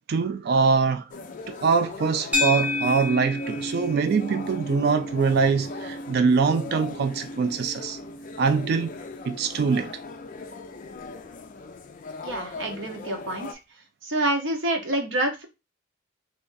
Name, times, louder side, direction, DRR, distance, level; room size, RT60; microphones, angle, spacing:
voice 1, 0.1-1.0 1.5-8.0 8.4-8.9 9.3-9.9, right 5 dB, 55° right, 0.3 m, -23 dB
sound 1, 1.1-13.5, left 4 dB, 40° left, 0.4 m, -40 dB
sound 2, 2.3-10.8, left 2 dB, 10° right, 0.6 m, -33 dB
voice 2, 12.2-13.6 14.0-15.4, right 1 dB, 70° right, 0.9 m, -27 dB
2.6 x 2.6 x 3.8 m
head